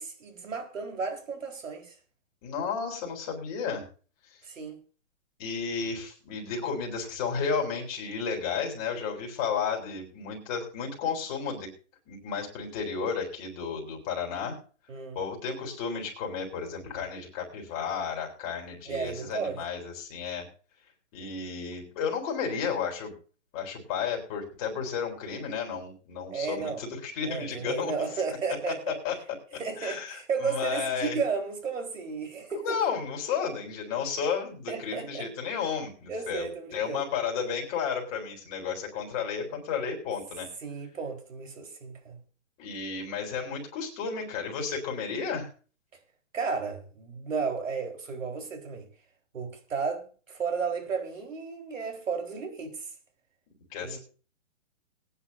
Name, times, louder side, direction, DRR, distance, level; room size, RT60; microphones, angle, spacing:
voice 1, 0.0-1.9 4.4-4.8 14.9-15.2 18.9-19.6 26.3-26.8 27.2-29.0 29.6-32.8 34.7-35.3 36.1-37.0 40.6-42.2 46.3-48.9 49.3-52.9 53.8-54.0, right 5 dB, 80° right, 4.3 m, -33 dB
voice 2, 2.4-3.9 4.3-4.4 5.4-11.7 12.1-14.6 15.1-20.5 21.1-23.1 23.5-27.9 28.3-28.4 28.7-29.1 29.5-31.2 32.5-40.5 42.6-45.5 53.7-54.0, left 6 dB, 30° left, 3.8 m, -33 dB
21.0 x 9.9 x 2.7 m
hypercardioid pair, 160°, 38 cm